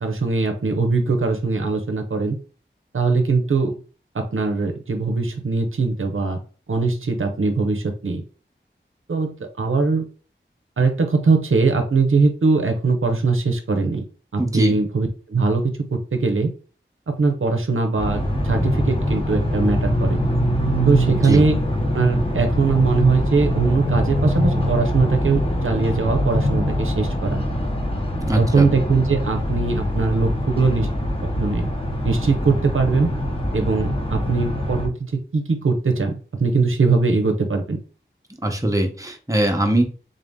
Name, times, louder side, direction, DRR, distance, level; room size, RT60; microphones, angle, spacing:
voice 1, 0.0-2.4 2.9-3.8 4.1-6.4 6.7-8.2 9.1-10.1 10.8-14.0 14.3-16.5 17.1-20.2 20.8-21.5 21.9-27.4 28.4-30.9 31.4-31.7 32.0-33.1 33.5-37.8, right 4 dB, 85° right, 5 dB, 0.6 m, -21 dB
voice 2, 14.4-14.8 21.1-21.4 28.3-28.7 38.4-39.8, right 1 dB, 15° right, 4 dB, 0.8 m, -21 dB
sound 1, 18.0-34.9, equal, 25° left, 0.9 m, -23 dB
3.7 x 2.6 x 3.5 m, 0.38 s
wide cardioid pair, 45°, 20 cm